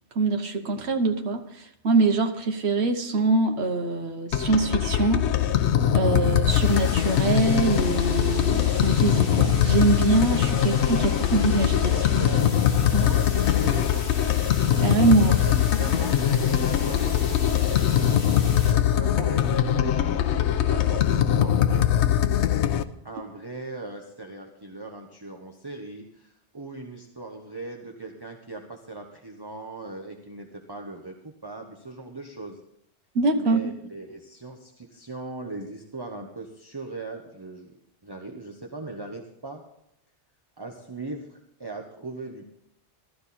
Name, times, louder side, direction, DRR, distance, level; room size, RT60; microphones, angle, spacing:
voice 1, 0.1-5.6 5.9-11.0 11.3-11.9 12.9-13.1 14.8-15.3 33.1-33.7, right 3 dB, 70° right, 6 dB, 1.3 m, -24 dB
sound 1, 4.3-22.8, left 10 dB, 85° left, 1.0 m, -22 dB
sound 2, 6.5-18.7, left 3 dB, 55° left, 1.7 m, -39 dB
voice 2, 10.6-11.4 11.7-12.5 12.8-14.4 15.1-16.2 16.5-18.1 18.6-21.9 23.0-32.6 33.3-37.8 38.0-39.6 40.6-42.5, right 2 dB, 20° right, 1 dB, 1.1 m, -39 dB
15.0 x 12.5 x 4.2 m, 0.79 s
omnidirectional pair, 1.1 m